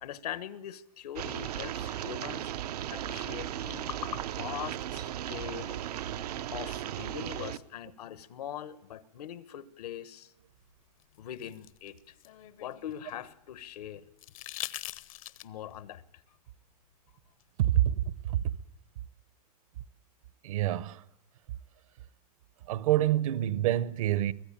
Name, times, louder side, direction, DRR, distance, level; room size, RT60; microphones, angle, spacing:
voice 1, 0.0-2.5 2.9-5.8 6.5-10.3 11.2-12.2 12.6-14.1 15.4-16.0, left 11 dB, 85° left, 1.4 m, -41 dB
sound 1, 1.2-7.6, right 11 dB, 85° right, 0.9 m, -36 dB
sound 2, 11.0-13.3 14.2-15.7 17.4-17.5, left 15 dB, 60° left, 0.8 m, -43 dB
voice 2, 17.6-18.4 20.4-21.0 22.7-24.3, right 13 dB, 60° right, 1.0 m, -27 dB
24.0 x 16.5 x 8.8 m
supercardioid pair, 160°, 20 cm